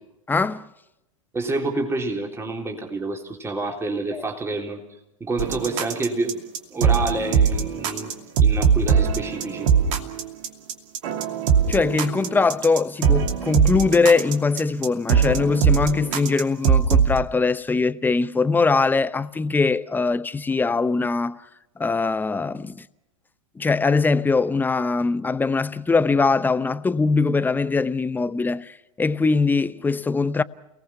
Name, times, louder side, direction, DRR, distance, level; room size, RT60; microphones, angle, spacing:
voice 1, 0.3-0.7 4.1-4.2 11.7-21.4 21.8-22.9 23.6-30.4, left 4 dB, 10° left, 0.7 m, -22 dB
voice 2, 1.3-4.8 5.2-6.4 6.7-8.1 8.4-9.7, right 2 dB, 15° right, 3.7 m, -28 dB
sound 1, 5.4-17.2, right 7 dB, 60° right, 2.7 m, -21 dB
29.5 x 19.0 x 5.8 m
hypercardioid pair, 95°, 18 cm